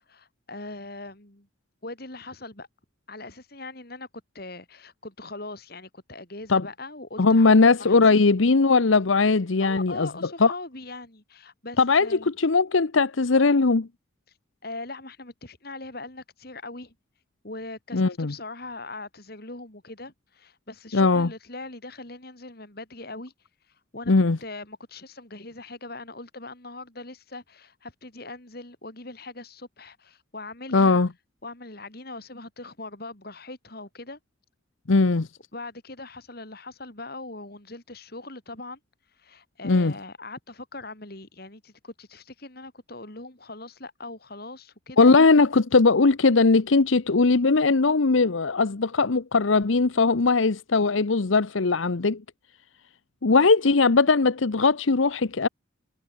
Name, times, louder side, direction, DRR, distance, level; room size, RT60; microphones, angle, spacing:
voice 1, 0.0-1.5 1.8-2.7 3.1-4.1 4.3-7.5 7.8-8.2 9.6-12.3 14.6-16.9 17.4-23.3 23.9-24.1 24.4-31.0 31.4-34.2 35.5-38.8 39.2-45.1, left 2 dB, 50° left, 3.8 m, -40 dB
voice 2, 7.2-10.1 10.4-10.5 11.8-13.9 17.9-18.3 20.9-21.3 24.1-24.4 30.7-31.1 34.9-35.3 39.6-39.9 45.0-52.2 53.2-55.5, left 3 dB, 80° left, 0.9 m, -19 dB
head